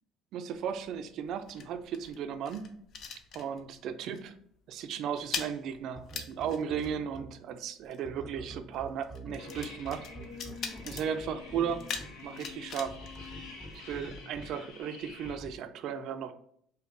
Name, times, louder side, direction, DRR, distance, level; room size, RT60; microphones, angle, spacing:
voice 1, 0.3-2.7 3.3-4.3 4.7-10.0 10.4-10.5 10.9-11.8 12.2-13.0 13.7-16.3, right 8 dB, 65° right, 9 dB, 0.4 m, -35 dB
sound 1, 0.5-3.9 4.1-4.4 4.7-14.1, left 6 dB, 55° left, 0.6 m, -43 dB
sound 2, 6.0-7.3 8.0-12.1 12.8-14.5 15.2-15.5, right 2 dB, ahead, 0.6 m, -45 dB
sound 3, 9.4-15.4, left 4 dB, 85° left, 1.0 m, -47 dB
5.1 x 2.3 x 2.6 m, 0.66 s
cardioid pair, 115°, 0 cm